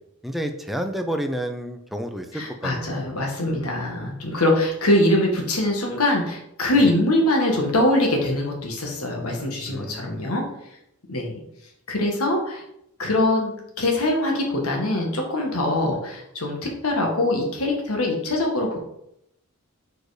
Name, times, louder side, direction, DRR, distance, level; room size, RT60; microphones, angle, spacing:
voice 1, 0.2-3.1 6.8-6.9 9.7-10.3, equal, ahead, 5 dB, 0.5 m, -30 dB
voice 2, 2.3-10.5 11.1-11.4 11.9-12.6 13.0-13.5 13.8-18.8, left 1 dB, 85° left, 1 dB, 1.5 m, -23 dB
4.8 x 4.4 x 4.9 m, 0.79 s
head